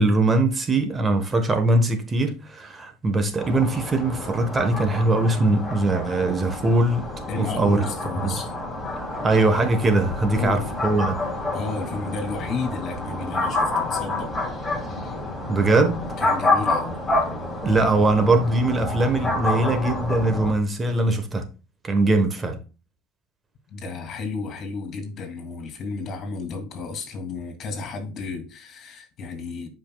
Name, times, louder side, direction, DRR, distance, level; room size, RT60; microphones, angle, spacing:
voice 1, 0.0-7.1 7.5-7.8 8.2-8.4 9.2-11.2 15.5-16.0 17.6-21.5 21.8-22.6, right 2 dB, 25° right, 1.2 m, -21 dB
sound 1, 3.4-20.5, left 2 dB, 10° left, 2.9 m, -28 dB
voice 2, 7.3-8.5 10.3-10.7 11.5-14.3 16.2-17.0 23.7-29.7, left 4 dB, 45° left, 2.7 m, -32 dB
11.5 x 5.2 x 2.3 m
supercardioid pair, 100°, 0 cm